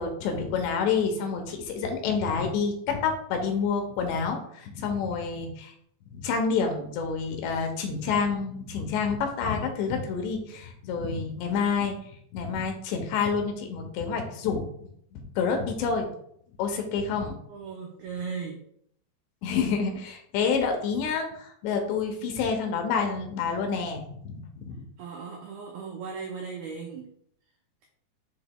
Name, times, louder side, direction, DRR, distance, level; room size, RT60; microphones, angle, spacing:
voice 1, 0.0-5.7 6.1-11.9 12.3-14.7 15.1-16.1 16.6-17.4 19.4-24.8, left 5 dB, 75° left, 4 dB, 3.0 m, -28 dB
voice 2, 17.5-18.6 25.0-27.1, right 5 dB, 85° right, 0 dB, 2.1 m, -37 dB
10.5 x 4.0 x 2.2 m, 0.67 s
omnidirectional pair, 5.2 m